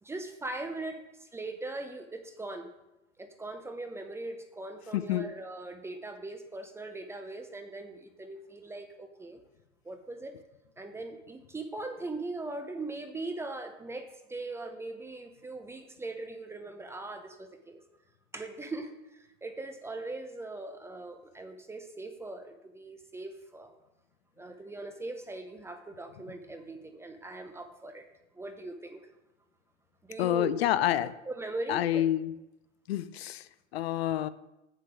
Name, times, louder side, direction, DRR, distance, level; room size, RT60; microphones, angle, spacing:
voice 1, 0.0-2.7 3.2-9.4 9.8-10.3 10.8-17.8 18.3-23.7 24.4-28.1 28.3-29.0 30.0-30.5 31.3-32.0, right 2 dB, 5° right, 6 dB, 0.5 m, -40 dB
voice 2, 4.9-5.3 30.2-31.2 31.7-32.3 32.9-34.3, left 12 dB, 55° left, 15 dB, 0.6 m, -28 dB
7.6 x 6.8 x 4.8 m, 0.92 s
hypercardioid pair, 115°, 37 cm